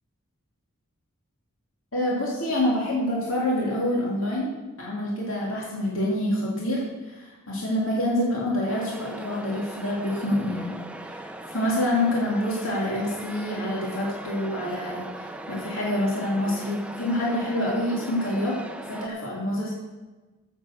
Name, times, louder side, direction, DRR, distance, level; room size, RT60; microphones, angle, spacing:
voice 1, 1.9-4.5 4.8-10.7 11.1-18.6 18.9-19.7, left 1 dB, 70° left, -5 dB, 2.8 m, -27 dB
sound 1, 8.7-19.1, right 1 dB, 5° right, 0.5 m, -39 dB
8.8 x 8.3 x 7.2 m, 1.2 s
head